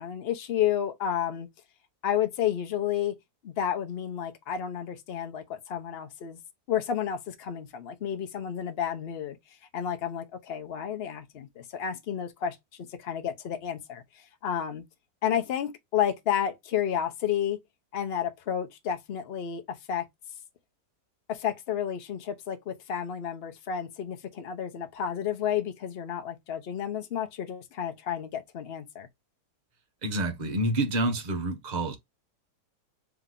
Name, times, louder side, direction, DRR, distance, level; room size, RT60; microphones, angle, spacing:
voice 1, 0.0-1.5 2.0-3.2 3.4-6.4 6.7-9.4 9.7-12.6 12.9-14.0 14.4-14.8 15.2-17.6 17.9-20.1 21.3-29.1, left 9 dB, 50° left, 0.8 m, -31 dB
voice 2, 30.0-32.0, right 1 dB, 30° right, 0.9 m, -28 dB
3.9 x 2.9 x 3.7 m
omnidirectional pair, 1.8 m